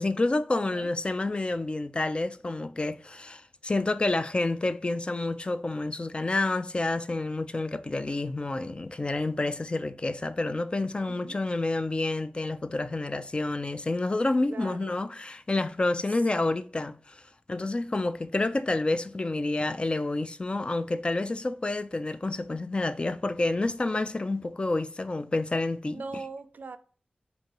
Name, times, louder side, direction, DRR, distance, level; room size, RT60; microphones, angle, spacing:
voice 1, 0.0-17.2 17.5-26.0, left 2 dB, 35° left, 0.3 m, -29 dB
voice 2, 0.6-0.9 11.1-11.4 14.5-15.1 16.1-16.2 25.9-26.8, right 4 dB, 70° right, 0.3 m, -41 dB
4.5 x 2.6 x 2.9 m
wide cardioid pair, 65°, 3 cm